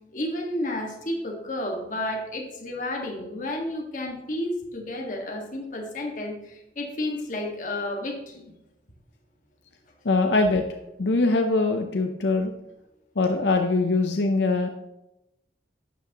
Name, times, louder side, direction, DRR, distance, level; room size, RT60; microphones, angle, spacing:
voice 1, 0.1-8.4, left 1 dB, 45° left, 1 dB, 1.7 m, -31 dB
voice 2, 10.0-10.6 11.0-12.5 13.2-14.7, left 3 dB, 80° left, 5 dB, 0.7 m, -22 dB
12.0 x 8.2 x 3.0 m, 0.89 s
head